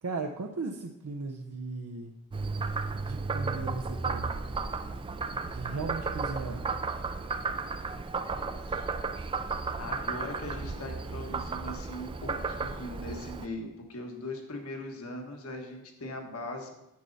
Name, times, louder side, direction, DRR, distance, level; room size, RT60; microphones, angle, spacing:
voice 1, 0.0-2.2 2.9-4.3 5.5-6.6, right 3 dB, 80° right, 4 dB, 0.6 m, -37 dB
Frog, 2.3-13.5, right 4 dB, 25° right, 0.3 m, -34 dB
voice 2, 9.8-16.7, left 1 dB, 65° left, 3 dB, 1.4 m, -40 dB
9.4 x 6.8 x 4.0 m, 0.91 s
head